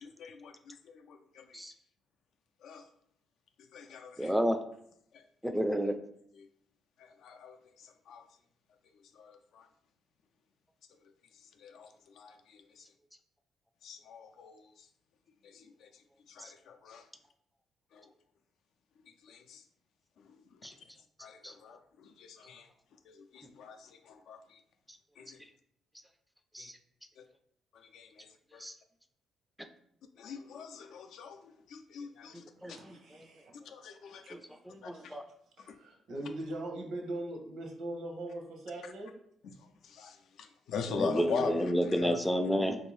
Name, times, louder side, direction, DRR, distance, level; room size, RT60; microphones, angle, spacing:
voice 1, 0.0-1.6 2.6-2.8 3.7-4.3 5.1-5.2 7.0-8.2 9.2-9.7 11.6-11.9 12.2-12.8 13.8-14.7 15.4-15.9 16.3-17.0 17.9-18.1 19.2-19.6 21.2-22.7 23.1-24.4 25.2-25.4 26.6-26.7 27.7-28.3 28.5-28.6 30.2-32.4 33.7-34.2 34.8-34.9 39.4-39.5 39.9-42.2, left 5 dB, 75° left, 6 dB, 0.4 m, -42 dB
voice 2, 4.2-4.6 5.4-6.0 16.4-16.5 20.6-20.7 21.4-21.5 26.5-26.7 28.6-28.7 32.3-33.0 34.3-34.4 34.6-35.2 40.9-42.8, equal, ahead, 6 dB, 0.3 m, -31 dB
voice 3, 32.3-33.5 34.2-34.3 34.9-35.2 35.6-39.1, right 1 dB, 75° right, 2 dB, 0.8 m, -41 dB
3.2 x 2.6 x 3.1 m, 0.70 s
cardioid pair, 90°, 0 cm